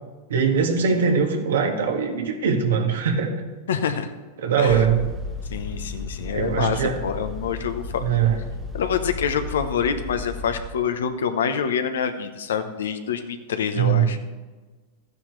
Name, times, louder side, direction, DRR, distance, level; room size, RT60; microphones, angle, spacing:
voice 1, 0.3-3.4 4.4-5.1 6.3-7.0 8.0-8.4 13.7-14.2, right 6 dB, 80° right, 3 dB, 1.7 m, -21 dB
voice 2, 3.7-4.1 4.6-4.8 5.5-8.0 8.7-14.2, left 7 dB, 80° left, 9 dB, 1.0 m, -26 dB
sound 1, 4.7-10.6, left 3 dB, 25° right, 1.3 m, -34 dB
13.5 x 9.6 x 3.3 m, 1.3 s
hypercardioid pair, 105°, 0 cm